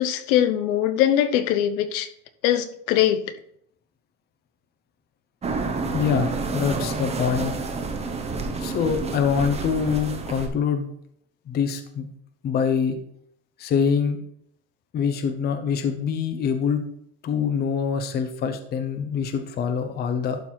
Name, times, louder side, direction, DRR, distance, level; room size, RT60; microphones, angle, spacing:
voice 1, 0.0-2.1 2.4-3.2, left 11 dB, 75° left, 11 dB, 1.0 m, -21 dB
sound 1, 5.4-10.5, right 3 dB, 15° right, 0.8 m, -29 dB
voice 2, 5.9-7.5 8.6-10.9 11.5-12.1 12.4-13.0 13.6-14.2 14.9-16.8 17.2-20.4, left 6 dB, 25° left, 7 dB, 0.7 m, -24 dB
11.5 x 4.1 x 4.4 m, 0.68 s
cardioid pair, 160°, 42 cm